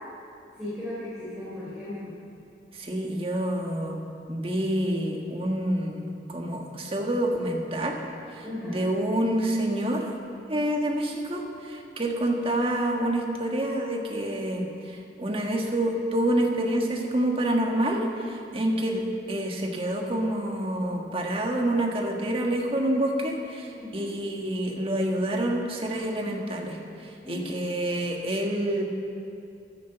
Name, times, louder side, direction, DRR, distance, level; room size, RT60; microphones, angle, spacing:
voice 1, 0.6-2.1 8.4-8.8 23.8-24.1 27.2-27.6, left 1 dB, 5° right, -11 dB, 3.6 m, -36 dB
voice 2, 2.7-4.0 4.3-8.0 8.3-10.1 10.5-19.0 19.3-28.8, right 1 dB, 30° right, 1 dB, 1.6 m, -27 dB
15.0 x 10.0 x 6.8 m, 2.6 s
head